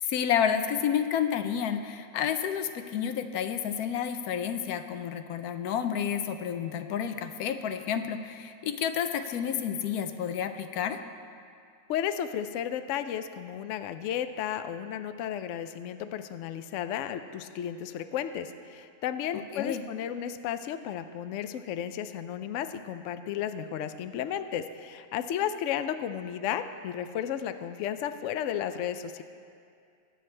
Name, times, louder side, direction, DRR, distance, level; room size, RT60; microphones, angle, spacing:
voice 1, 0.0-11.0 19.5-19.8, left 8 dB, 90° left, 8 dB, 1.1 m, -30 dB
voice 2, 11.9-29.2, left 9 dB, 70° left, 10 dB, 0.8 m, -33 dB
20.5 x 8.0 x 3.3 m, 2.4 s
omnidirectional pair, 1.5 m